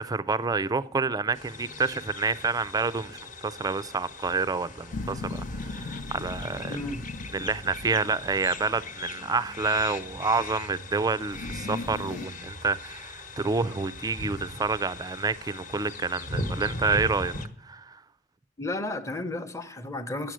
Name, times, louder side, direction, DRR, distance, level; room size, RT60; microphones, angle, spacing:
voice 1, 0.0-6.8 7.3-17.3 17.6-18.0, right 4 dB, 20° right, 0.4 m, -28 dB
sound 1, 1.3-17.5, left 2 dB, 45° left, 1.1 m, -39 dB
sound 2, 4.9-8.9 11.3-12.3, left 2 dB, 70° left, 0.8 m, -38 dB
voice 2, 6.7-7.0 18.6-20.3, left 2 dB, 15° left, 0.8 m, -33 dB
10.5 x 7.4 x 6.2 m
head